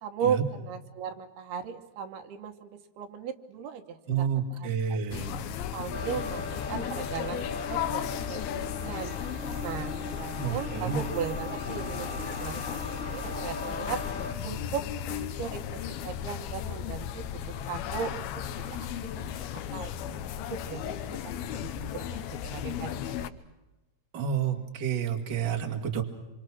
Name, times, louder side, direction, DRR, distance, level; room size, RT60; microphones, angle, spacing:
voice 1, 0.0-5.2 5.7-9.1 9.6-12.8 13.1-14.0 14.4-23.3, right 7 dB, 80° right, 7 dB, 3.1 m, -37 dB
voice 2, 4.1-5.4 10.4-11.0 24.1-26.0, right 7 dB, 35° right, 3 dB, 2.1 m, -30 dB
sound 1, 5.1-23.3, left 9 dB, 75° left, 2.8 m, -36 dB
sound 2, 5.9-14.3, left 4 dB, 55° left, 3.7 m, -38 dB
sound 3, 8.7-14.1, right 3 dB, 10° right, 4.8 m, -45 dB
26.5 x 25.5 x 6.1 m, 1.1 s
omnidirectional pair, 4.6 m